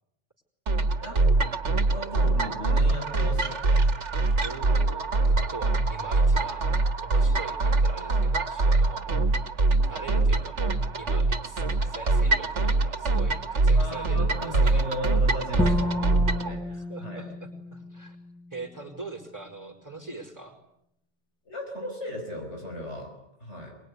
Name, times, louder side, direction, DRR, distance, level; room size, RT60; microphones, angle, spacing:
sound 1, 0.7-16.5, right 3 dB, 90° right, 1.9 m, -24 dB
voice 1, 1.0-1.3 1.9-3.7 13.8-17.2 21.5-23.1 23.4-23.7, equal, 80° left, 1 dB, 5.8 m, -36 dB
voice 2, 4.4-6.7 7.0-9.3 9.8-14.8 15.6-15.8 16.9-18.2 18.5-20.6, right 3 dB, 15° right, 5 dB, 4.8 m, -42 dB
Bowed string instrument, 15.6-18.7, left 1 dB, 5° left, 1.3 m, -31 dB
24.5 x 21.5 x 9.9 m, 0.79 s
omnidirectional pair, 1.2 m